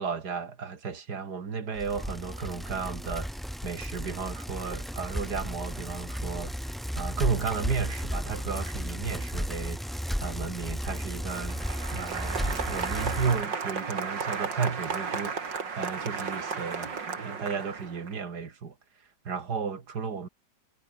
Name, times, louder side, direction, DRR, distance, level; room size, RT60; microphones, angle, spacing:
voice 1, 0.0-3.3 3.6-6.5 6.9-11.6 11.9-15.4 15.8-18.7 19.2-20.3, right 5 dB, 60° right, 2.7 m, -33 dB
Bicycle, 1.8-13.4, equal, ahead, 0.5 m, -34 dB
Applause, 11.2-18.1, right 5 dB, 80° right, 3.2 m, -34 dB
omnidirectional pair, 1.9 m